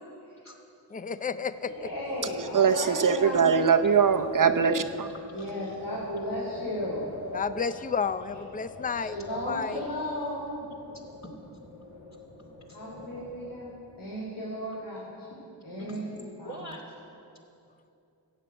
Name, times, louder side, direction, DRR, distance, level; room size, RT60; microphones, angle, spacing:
voice 1, 0.9-1.9 7.3-9.2 9.4-9.8, left 6 dB, 20° left, 13 dB, 0.5 m, -31 dB
Wind, 1.5-14.1, left 2 dB, 90° left, 1.8 m, -45 dB
voice 2, 1.7-3.4 5.3-7.1 8.9-10.5 12.7-15.3 15.6-16.1 16.4-16.6, left 1 dB, 65° left, -6 dB, 3.7 m, -35 dB
voice 3, 2.5-5.1, right 6 dB, 45° right, 8 dB, 0.8 m, -22 dB
voice 4, 11.1-11.7 12.1-13.1 15.8-16.0 16.4-16.8, equal, 40° left, 0 dB, 2.9 m, -46 dB
14.0 x 8.4 x 8.0 m, 2.7 s
cardioid pair, 50°, 43 cm